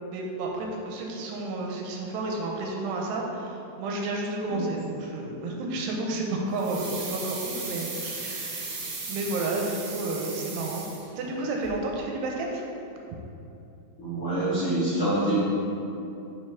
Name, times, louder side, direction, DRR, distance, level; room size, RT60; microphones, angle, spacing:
voice 1, 0.1-8.8 9.1-10.8 11.2-12.7, right 2 dB, 85° right, 0 dB, 2.7 m, -31 dB
sound 1, 6.6-11.4 11.6-11.7, right 3 dB, 65° right, 2.4 m, -36 dB
voice 2, 14.0-15.4, right 1 dB, 65° left, -13 dB, 1.4 m, -26 dB
6.0 x 5.6 x 3.5 m, 2.8 s
omnidirectional pair, 4.8 m